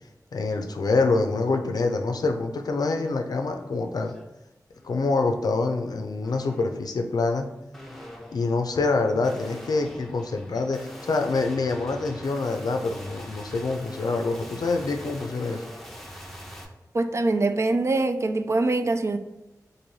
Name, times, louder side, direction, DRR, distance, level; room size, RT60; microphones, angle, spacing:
voice 1, 0.3-4.1 4.8-7.5 8.3-15.6, left 3 dB, 75° left, 0.5 m, -26 dB
sound 1, 2.9-3.1 3.5-4.2 4.7-5.2 6.2-6.8 7.7-16.6, equal, 5° left, 0.7 m, -43 dB
voice 2, 16.9-19.2, right 2 dB, 45° right, 0.3 m, -23 dB
3.1 x 2.6 x 4.0 m
cardioid pair, 55°, 7 cm